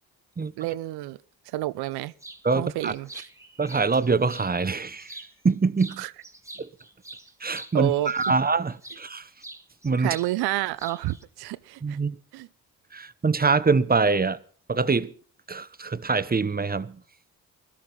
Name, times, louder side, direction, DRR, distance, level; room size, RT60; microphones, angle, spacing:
voice 1, 0.6-1.2 1.5-2.1 2.5-3.3 6.0-6.1 7.7-8.4 10.0-12.0 12.3-12.5, right 16 dB, 85° right, 0.7 m, -29 dB
sound 1, 2.2-2.4 2.8-4.5 5.0-5.5 5.8-9.0 9.4-10.3 10.6-11.2, right 1 dB, 10° right, 2.0 m, -44 dB
voice 2, 2.4-2.9 3.6-5.1 5.4-6.0 6.6-6.7 7.4-9.3 9.8-10.2 11.8-12.2 12.9-14.4 14.7-15.1 15.5-17.0, right 4 dB, 25° right, 1.0 m, -24 dB
17.0 x 13.0 x 5.5 m
supercardioid pair, 50°, 37 cm